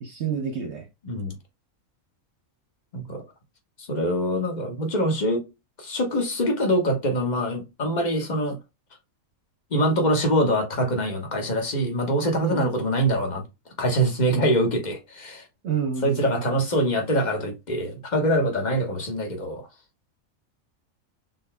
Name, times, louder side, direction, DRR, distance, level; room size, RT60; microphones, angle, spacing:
voice 1, 0.0-0.9 12.4-12.7 15.6-16.4, right 7 dB, 60° right, 0.9 m, -29 dB
voice 2, 1.0-1.4 2.9-3.2 3.8-5.4 5.8-8.6 9.7-13.4 13.8-15.4 16.0-19.7, equal, 35° left, 1.2 m, -24 dB
4.0 x 3.8 x 2.2 m
omnidirectional pair, 1.5 m